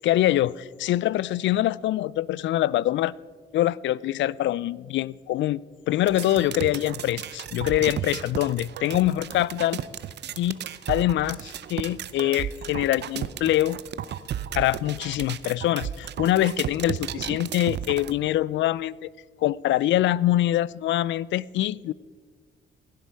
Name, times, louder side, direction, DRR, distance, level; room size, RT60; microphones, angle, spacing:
voice 1, 0.0-3.1 3.5-9.8 10.4-10.6 10.9-13.8 14.5-19.1 19.4-21.9, left 14 dB, 70° left, 0.4 m, -24 dB
sound 1, 6.1-18.1, right 10 dB, 60° right, 0.6 m, -34 dB
16.5 x 11.0 x 4.7 m
cardioid pair, 90°, 20 cm